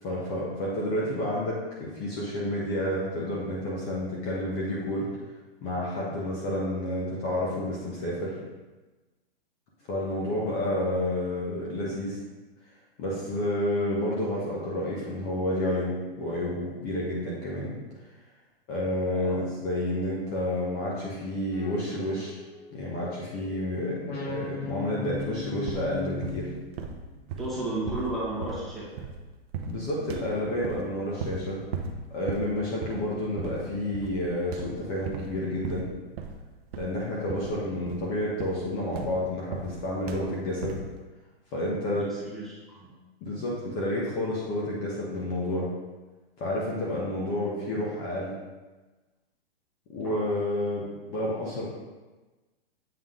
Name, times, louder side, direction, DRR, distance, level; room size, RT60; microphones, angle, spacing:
voice 1, 0.0-5.1 5.6-8.3 9.9-12.2 13.0-17.7 18.7-22.4 22.7-26.5 29.7-31.6 32.1-35.9 36.7-40.8 41.5-42.1 43.2-45.7 46.4-48.3 49.9-51.7, left 1 dB, 30° left, -5 dB, 1.2 m, -30 dB
sound 1, 21.5-23.6 24.0-27.2, left 4 dB, 80° left, 2.0 m, -39 dB
sound 2, 25.1-25.4 25.7-26.5 26.8-29.2 29.5-29.8 30.1-30.9 31.2-31.5 31.7-32.0 32.3-32.6 32.8-33.1 33.4-33.7 33.9-34.2 34.5-35.3 35.6-36.4 36.7-37.0 37.3-37.6 37.9-39.8 40.1-40.3 40.6-40.9, right 5 dB, 40° right, 0.6 m, -37 dB
voice 2, 27.4-29.0 41.9-42.9 50.0-50.2, right 2 dB, ahead, -9 dB, 1.6 m, -34 dB
7.9 x 3.6 x 3.7 m, 1.2 s
hypercardioid pair, 145°, 30 cm